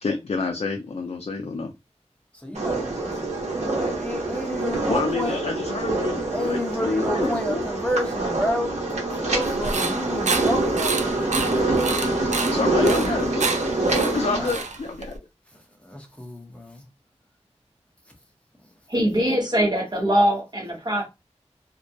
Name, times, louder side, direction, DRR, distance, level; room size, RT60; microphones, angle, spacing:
voice 1, 0.0-1.7 4.9-7.7 12.5-13.5 13.9-15.2, left 4 dB, 60° left, 0.4 m, -28 dB
voice 2, 2.4-5.4 6.3-8.7 9.2-11.7 12.3-13.2 14.4-14.5 15.8-16.8, left 1 dB, 10° left, 0.8 m, -31 dB
sound 1, 2.5-14.5, right 2 dB, 70° right, 0.9 m, -25 dB
sound 2, 9.4-15.2, right 4 dB, 85° right, 0.4 m, -29 dB
voice 3, 18.9-21.1, equal, 35° right, 0.9 m, -22 dB
2.3 x 2.1 x 2.7 m
wide cardioid pair, 55°, 12 cm